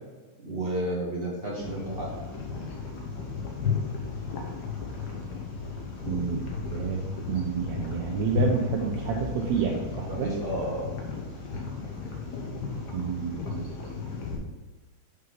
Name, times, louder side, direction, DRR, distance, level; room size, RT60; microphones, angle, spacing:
voice 1, 0.4-2.1 10.0-10.9, right 1 dB, 45° right, -4 dB, 0.7 m, -31 dB
sound 1, 1.6-14.4, left 5 dB, 75° left, 0.9 m, -34 dB
voice 2, 6.1-7.0 7.3-10.3 12.9-13.6, right 6 dB, 75° right, 0 dB, 1.8 m, -29 dB
6.5 x 5.5 x 4.0 m, 1.3 s
omnidirectional pair, 3.4 m